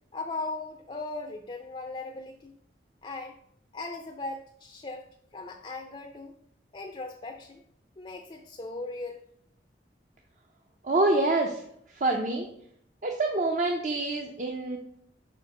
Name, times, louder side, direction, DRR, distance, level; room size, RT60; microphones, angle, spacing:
voice 1, 0.1-2.5 3.0-3.4 3.7-6.4 6.7-7.6 8.0-9.3, left 2 dB, 30° left, 4 dB, 0.4 m, -38 dB
voice 2, 10.8-11.6 11.9-12.5 13.0-14.8, right 2 dB, 40° right, 2 dB, 0.5 m, -26 dB
4.5 x 4.4 x 5.9 m, 0.71 s
head